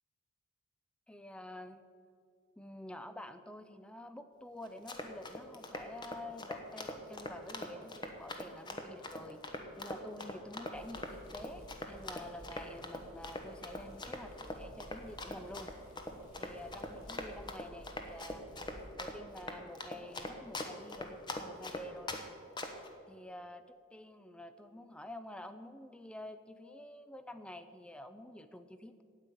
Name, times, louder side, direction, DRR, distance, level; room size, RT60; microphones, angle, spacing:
voice 1, 1.1-1.8 2.6-9.4 9.8-15.7 16.4-18.5 19.0-22.2 23.1-29.0, left 1 dB, 5° left, 10 dB, 0.4 m, -49 dB
Run, 4.7-22.2 22.6-22.9, left 2 dB, 20° left, 1.0 m, -42 dB
sound 1, 10.7-18.9, equal, 90° left, 3.1 m, -55 dB
9.8 x 8.6 x 9.1 m, 2.3 s
head